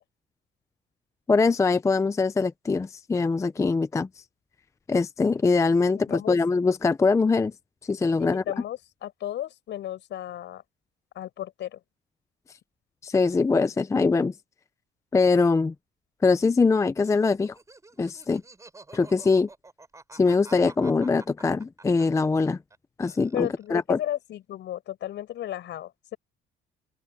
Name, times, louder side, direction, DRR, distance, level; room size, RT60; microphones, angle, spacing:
voice 1, 1.3-4.1 4.9-7.5 7.9-8.4 13.0-14.3 15.1-15.7 16.2-17.5 18.0-18.4 18.9-19.5 20.1-22.6 23.0-24.0, left 4 dB, 15° left, 0.5 m, -22 dB
voice 2, 6.0-6.4 8.2-10.6 11.2-11.8 23.3-26.2, left 12 dB, 60° left, 6.9 m, -34 dB
Laughter, 17.0-22.8 23.0-23.8, right 3 dB, 15° right, 7.6 m, -49 dB
open air
cardioid pair, 140°, 20 cm